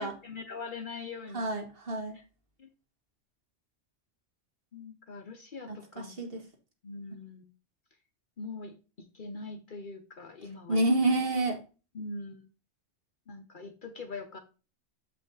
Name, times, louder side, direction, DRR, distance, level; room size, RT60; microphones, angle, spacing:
voice 1, 0.0-1.5 2.1-2.2 2.6-2.7 4.7-6.2 6.8-7.4 8.4-11.1 11.9-12.5 13.3-14.4, left 3 dB, 45° left, 6 dB, 0.9 m, -42 dB
voice 2, 1.3-2.2 5.7-6.4 10.7-11.6, right 2 dB, 50° right, 3 dB, 1.7 m, -28 dB
7.2 x 5.1 x 3.8 m, 0.33 s
omnidirectional pair, 1.3 m